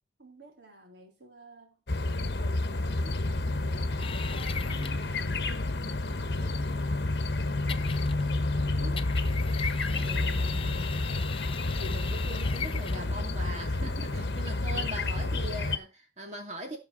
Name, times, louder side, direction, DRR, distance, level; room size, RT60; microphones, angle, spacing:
voice 1, 0.2-3.2 3.6-9.0 14.0-15.0, right 2 dB, 75° right, 3.6 m, -52 dB
sound 1, 1.9-15.8, left 2 dB, 70° left, 1.0 m, -30 dB
sound 2, 4.0-5.1 7.7-8.4 9.0-13.2, left 6 dB, 30° left, 0.4 m, -39 dB
voice 2, 9.9-11.1 11.7-14.0 14.4-16.8, right 1 dB, 40° right, 2.6 m, -41 dB
17.0 x 5.7 x 3.9 m
head